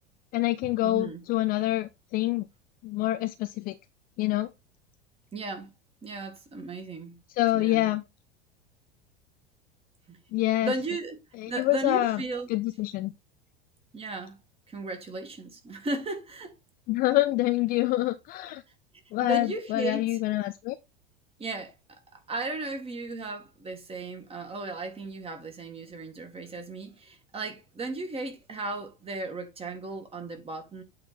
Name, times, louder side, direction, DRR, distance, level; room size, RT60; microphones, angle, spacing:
voice 1, 0.3-2.4 2.8-3.8 4.2-4.5 7.4-8.0 10.3-10.7 11.4-12.2 12.5-13.1 16.9-18.6 19.1-20.8, left 17 dB, 30° left, 0.4 m, -26 dB
voice 2, 0.8-1.2 5.3-5.7 6.0-7.2 7.5-7.9 10.1-10.2 10.6-11.2 11.5-12.5 13.9-14.4 14.7-16.6 19.2-20.2 21.4-30.8, right 2 dB, 20° right, 1.9 m, -35 dB
8.6 x 3.8 x 4.1 m
figure-of-eight pair, 80°, 30 cm